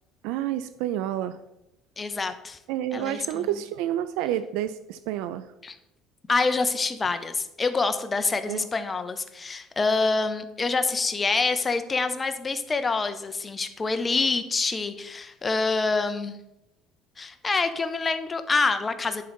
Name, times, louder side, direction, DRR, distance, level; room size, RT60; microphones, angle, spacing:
voice 1, 0.2-1.4 2.7-5.5 8.5-8.7, right 12 dB, 85° right, 11 dB, 0.4 m, -29 dB
voice 2, 2.0-2.6 2.9-3.5 5.6-5.7 6.3-16.4 17.2-19.2, left 4 dB, 20° left, 9 dB, 0.7 m, -26 dB
10.5 x 3.9 x 5.2 m, 0.89 s
cardioid pair, 115°, 0 cm